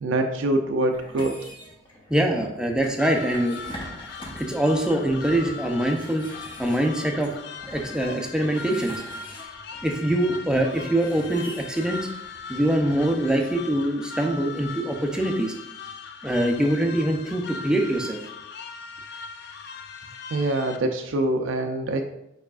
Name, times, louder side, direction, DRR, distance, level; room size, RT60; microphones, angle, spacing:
voice 1, 0.0-1.4 20.3-22.0, right 1 dB, 85° right, 5 dB, 0.4 m, -24 dB
sound 1, 0.9-13.6, left 1 dB, 25° left, 0.9 m, -44 dB
voice 2, 2.1-3.6 4.3-6.2 6.6-7.3 7.7-9.0 9.8-12.1 12.5-15.5 16.2-18.2, right 1 dB, 5° right, 2 dB, 0.5 m, -24 dB
sound 2, 3.0-20.8, left 4 dB, 60° left, 0.4 m, -39 dB
4.9 x 4.5 x 2.4 m, 0.87 s
head